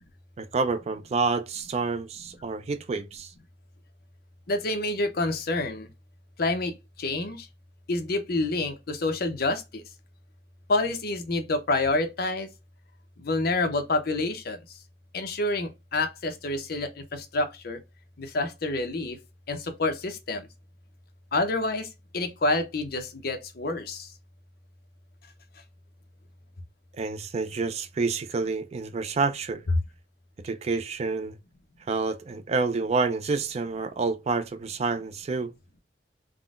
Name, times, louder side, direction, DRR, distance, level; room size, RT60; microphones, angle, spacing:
voice 1, 0.4-3.3 27.0-29.6 30.4-31.3 31.9-35.5, right 4 dB, 35° right, 0.3 m, -28 dB
voice 2, 4.5-5.9 6.4-7.5 7.9-9.8 10.7-12.5 13.2-14.6 15.1-17.8 18.2-19.2 19.5-20.5 21.3-24.1, left 2 dB, 55° left, 0.6 m, -28 dB
3.6 x 2.1 x 2.3 m
head